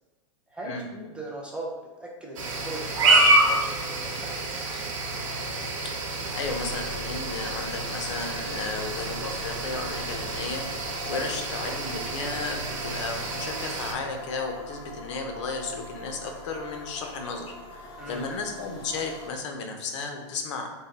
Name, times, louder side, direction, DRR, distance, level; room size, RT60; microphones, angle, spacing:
voice 1, 0.5-1.7 2.0-4.8 11.1-11.3 18.0-18.2, right 1 dB, 5° right, -3 dB, 0.4 m, -39 dB
sound 1, 2.4-13.9, right 2 dB, 80° right, 0.9 m, -27 dB
voice 2, 6.3-10.6 11.1-20.7, left 4 dB, 65° left, 3 dB, 0.7 m, -34 dB
sound 2, 6.4-19.3, left 1 dB, 25° left, 0.7 m, -42 dB
3.7 x 2.2 x 4.0 m, 1.2 s
supercardioid pair, 150°, 16 cm